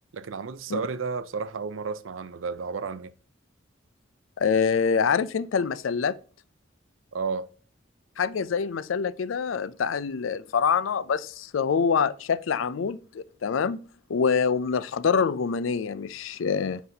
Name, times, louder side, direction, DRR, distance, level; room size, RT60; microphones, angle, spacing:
voice 1, 0.1-3.1 7.1-7.5, right 5 dB, 90° right, 0.5 m, -32 dB
voice 2, 4.4-6.1 8.2-13.8 14.1-16.8, left 6 dB, 85° left, 0.4 m, -25 dB
9.3 x 4.1 x 2.8 m
head